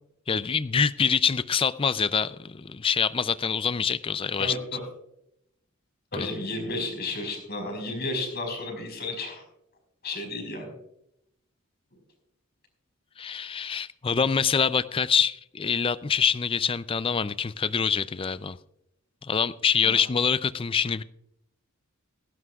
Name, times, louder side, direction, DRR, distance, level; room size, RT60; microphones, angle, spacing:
voice 1, 0.3-4.5 6.1-6.3 13.2-18.6 19.2-21.0, left 6 dB, 25° left, 16 dB, 0.4 m, -25 dB
voice 2, 4.4-4.8 6.1-9.4 10.0-10.7 19.8-20.1, left 2 dB, 50° left, 4 dB, 4.9 m, -33 dB
17.0 x 16.0 x 2.4 m, 0.79 s
head